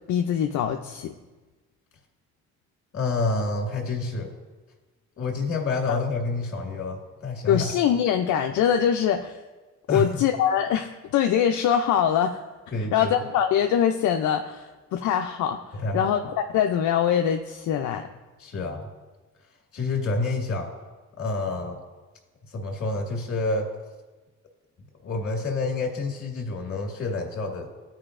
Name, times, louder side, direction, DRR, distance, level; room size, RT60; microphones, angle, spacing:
voice 1, 0.1-1.1 5.9-6.0 7.5-9.4 9.9-12.4 12.9-15.6 15.9-18.0, left 9 dB, 75° left, 4 dB, 0.5 m, -23 dB
voice 2, 2.9-4.3 5.2-7.7 9.9-10.3 12.7-13.1 15.7-16.1 18.4-18.9 19.7-20.7 21.2-21.8 22.5-23.7 25.0-27.7, left 3 dB, 50° left, 0 dB, 1.9 m, -28 dB
14.0 x 4.9 x 2.5 m, 1.2 s
cardioid pair, 90°, 30 cm